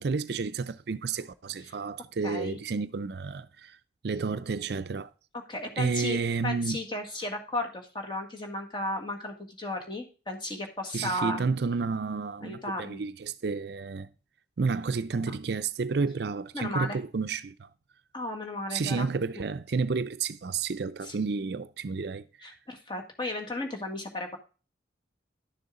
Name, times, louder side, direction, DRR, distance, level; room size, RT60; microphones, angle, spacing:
voice 1, 0.0-3.8 4.0-5.1 5.8-6.8 10.9-14.1 14.6-17.7 18.7-22.2, right 4 dB, 60° right, 0.5 m, -31 dB
voice 2, 2.2-2.6 5.5-11.5 12.4-13.1 15.3-15.4 16.5-17.0 18.1-19.1 21.0-21.2 22.4-24.4, left 1 dB, 25° left, 1.8 m, -34 dB
11.0 x 6.9 x 3.8 m
head